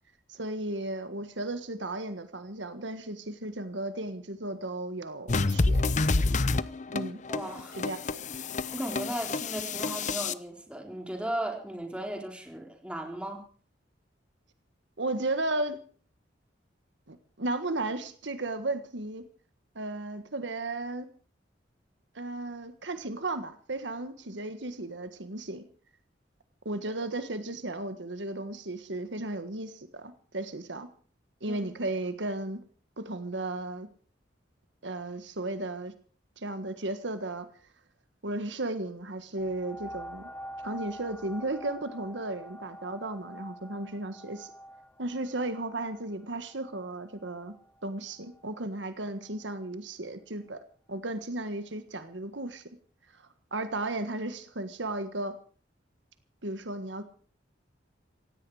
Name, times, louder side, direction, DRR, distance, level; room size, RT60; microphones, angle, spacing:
voice 1, 0.3-5.9 6.9-7.2 7.8-8.2 15.0-15.8 17.1-19.2 19.7-21.1 22.1-25.6 26.6-30.9 31.4-32.6 33.0-33.9 34.8-35.9 36.4-37.5 38.2-40.3 40.6-44.5 45.0-47.5 47.8-50.6 50.9-52.6 53.1-55.3 56.4-57.0, right 2 dB, 80° right, 10 dB, 1.6 m, -35 dB
sound 1, 5.3-10.3, left 3 dB, 40° left, 0.8 m, -28 dB
voice 2, 7.3-7.8 8.7-13.4 31.5-31.6, right 1 dB, 5° right, 2 dB, 4.1 m, -36 dB
sound 2, 39.4-48.6 49.3-49.4, equal, 10° left, 1.2 m, -46 dB
17.5 x 16.5 x 4.9 m, 0.44 s
head